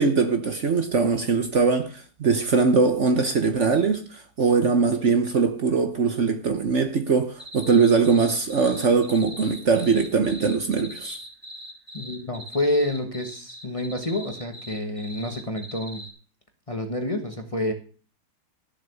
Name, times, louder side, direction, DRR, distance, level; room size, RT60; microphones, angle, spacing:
voice 1, 0.0-11.2, right 5 dB, 50° right, 1.2 m, -21 dB
sound 1, 7.4-16.1, equal, 5° right, 4.1 m, -41 dB
voice 2, 11.9-16.0 16.7-17.7, left 1 dB, 20° left, 1.3 m, -28 dB
13.5 x 7.4 x 6.9 m
omnidirectional pair, 1.8 m